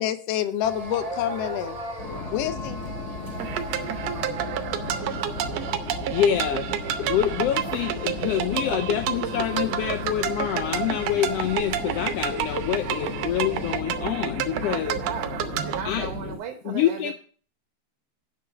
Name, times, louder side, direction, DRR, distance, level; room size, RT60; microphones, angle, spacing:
voice 1, 0.0-1.8 2.3-2.8, left 11 dB, 70° left, 1.6 m, -27 dB
sound 1, 0.6-13.8, right 1 dB, 55° right, 0.4 m, -39 dB
sound 2, 2.0-16.4, left 3 dB, 25° left, 4.2 m, -36 dB
sound 3, 3.4-15.8, right 10 dB, 70° right, 1.7 m, -30 dB
voice 2, 6.1-6.7 7.0-15.0 15.8-16.1 16.6-17.1, left 10 dB, 90° left, 1.3 m, -26 dB
voice 3, 14.6-17.1, right 7 dB, 90° right, 2.5 m, -36 dB
9.3 x 6.6 x 5.6 m
omnidirectional pair, 3.4 m